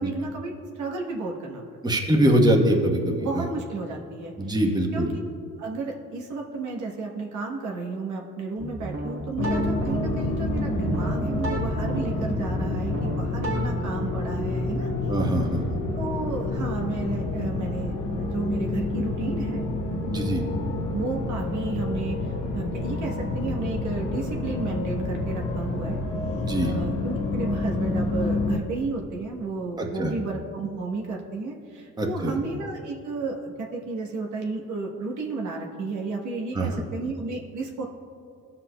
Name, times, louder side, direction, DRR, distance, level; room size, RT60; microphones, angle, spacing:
voice 1, 0.0-1.6 3.2-4.6 4.9-5.1 5.6-14.9 15.9-19.6 20.9-22.2 22.5-26.0 26.6-37.8, right 3 dB, 75° right, 0 dB, 1.1 m, -32 dB
voice 2, 1.8-3.4 4.4-5.1 15.1-15.8 20.1-20.4 26.4-26.7 29.8-30.1 32.0-32.4 36.5-36.8, right 1 dB, 15° right, 1 dB, 1.1 m, -23 dB
sound 1, 8.6-13.6, right 1 dB, 45° right, 1.8 m, -32 dB
sound 2, 9.4-28.6, left 2 dB, 80° left, 1.0 m, -28 dB
16.5 x 5.9 x 2.2 m, 2.4 s
cardioid pair, 90°, 30 cm